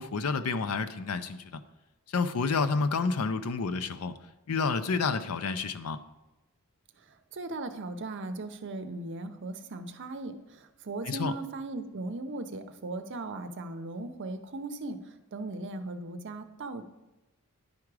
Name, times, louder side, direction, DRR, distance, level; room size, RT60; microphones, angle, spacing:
voice 1, 0.0-1.6 2.1-4.1 4.5-6.0 11.1-11.3, left 4 dB, 75° left, 12 dB, 0.5 m, -29 dB
voice 2, 7.1-16.9, right 2 dB, 55° right, 8 dB, 0.7 m, -38 dB
10.5 x 4.8 x 4.8 m, 1.0 s
head